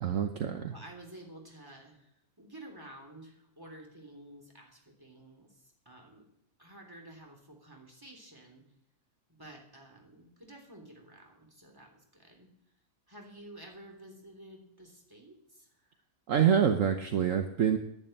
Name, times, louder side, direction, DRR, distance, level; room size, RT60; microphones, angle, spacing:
voice 1, 0.0-0.7 16.3-17.8, right 8 dB, 60° right, 6 dB, 1.2 m, -26 dB
voice 2, 0.7-2.1 2.4-5.5 5.8-6.3 6.6-8.6 9.3-12.5 13.1-15.7, right 1 dB, 15° right, 1 dB, 3.3 m, -51 dB
11.0 x 11.0 x 8.9 m, 0.75 s
omnidirectional pair, 1.6 m